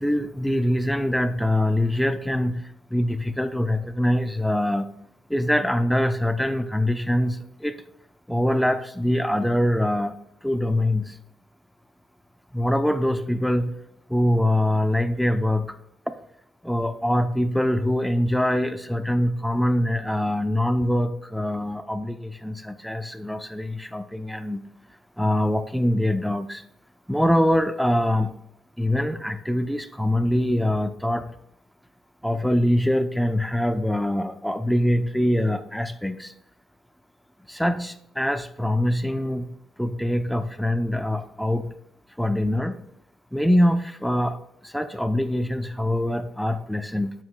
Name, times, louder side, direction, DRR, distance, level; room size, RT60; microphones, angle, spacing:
voice 1, 0.0-2.6 2.9-4.9 5.3-7.7 8.3-10.1 10.4-11.1 12.5-13.7 14.1-15.8 16.6-24.6 25.2-26.6 27.1-28.3 28.8-31.2 32.2-36.3 37.5-39.5 39.8-41.7 42.2-42.8 43.3-44.4 44.6-47.1, left 1 dB, ahead, 10 dB, 0.6 m, -23 dB
8.5 x 7.4 x 2.3 m, 0.79 s
cardioid pair, 90°, 0 cm